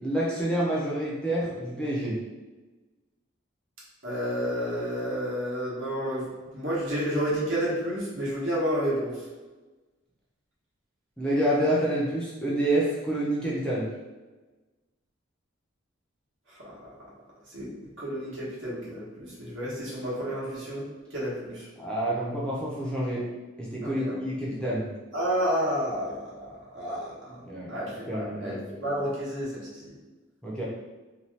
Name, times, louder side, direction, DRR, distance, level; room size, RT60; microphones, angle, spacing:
voice 1, 0.0-2.2 11.2-13.9 21.8-23.2 23.6-24.8 27.3-27.7 28.0-28.6 30.4-30.6, right 1 dB, 5° left, -7 dB, 0.5 m, -28 dB
voice 2, 4.0-6.3 6.5-9.2 16.5-16.7 17.5-17.6 18.0-21.7 23.8-24.2 25.1-27.1 27.7-29.9, equal, 65° right, -6 dB, 1.0 m, -30 dB
2.7 x 2.3 x 3.2 m, 1.2 s
head